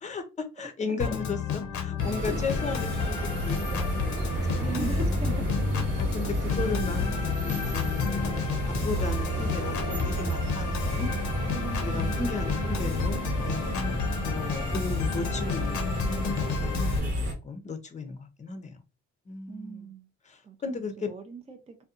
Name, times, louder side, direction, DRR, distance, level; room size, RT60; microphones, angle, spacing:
voice 1, 0.0-4.8 6.0-11.1 11.8-13.7 14.2-17.1 17.4-18.8 19.3-19.9 20.2-21.1, left 4 dB, 25° left, 0.6 m, -35 dB
Organ, 1.0-17.0, left 7 dB, 65° left, 0.6 m, -32 dB
sound 1, 2.0-17.3, right 1 dB, 50° right, 1.1 m, -31 dB
voice 2, 4.5-5.5 11.5-12.2 19.5-20.1 20.4-20.6 21.0-21.8, right 4 dB, 20° right, 0.4 m, -38 dB
2.6 x 2.2 x 2.4 m
cardioid pair, 90°, 30 cm